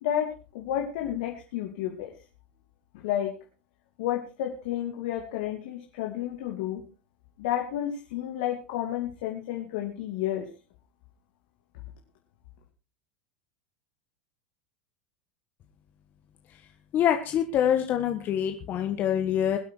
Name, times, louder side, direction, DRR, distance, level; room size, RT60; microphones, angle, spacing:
voice 1, 0.5-2.1 2.9-3.3 4.0-6.8 7.4-10.5, left 11 dB, 70° left, 1 dB, 2.8 m, -31 dB
voice 2, 16.9-19.6, left 9 dB, 40° left, 5 dB, 1.6 m, -25 dB
21.0 x 8.5 x 4.7 m, 0.35 s
hypercardioid pair, 100°, 5 cm